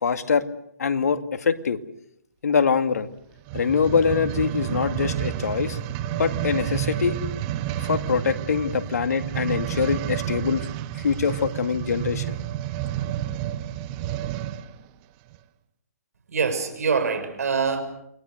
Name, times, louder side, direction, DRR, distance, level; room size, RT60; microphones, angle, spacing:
voice 1, 0.0-0.5 0.8-1.8 2.4-3.1 3.5-5.8 6.2-7.2 7.8-10.6 10.9-12.4, left 6 dB, 65° left, 9 dB, 2.1 m, -24 dB
sound 1, 3.4-14.7 15.3-15.4, right 13 dB, 25° right, 1.3 m, -30 dB
sound 2, 4.0-11.3, right 1 dB, 15° left, 3.9 m, -46 dB
voice 2, 16.3-17.8, right 5 dB, 65° right, 9 dB, 6.4 m, -24 dB
29.0 x 22.0 x 6.7 m, 0.74 s
hypercardioid pair, 145°, 9 cm